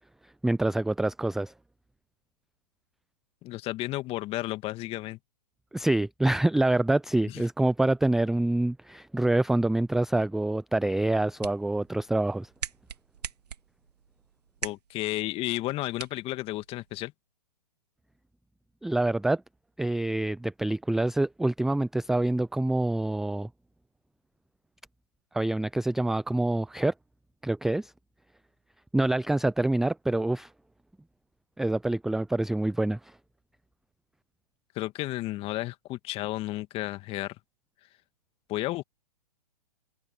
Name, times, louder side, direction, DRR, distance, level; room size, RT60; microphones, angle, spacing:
voice 1, 0.4-1.5 5.7-12.5 18.8-19.4 19.8-23.5 25.3-26.9 27.4-27.9 28.9-30.5 31.6-33.1, right 2 dB, ahead, 0.5 m, -26 dB
voice 2, 3.4-5.2 7.3-7.4 14.6-17.1 34.8-37.4 38.5-38.8, left 17 dB, 25° left, 2.0 m, -32 dB
sound 1, 11.0-17.0, right 7 dB, 70° right, 2.6 m, -43 dB
figure-of-eight pair, 120°, 21 cm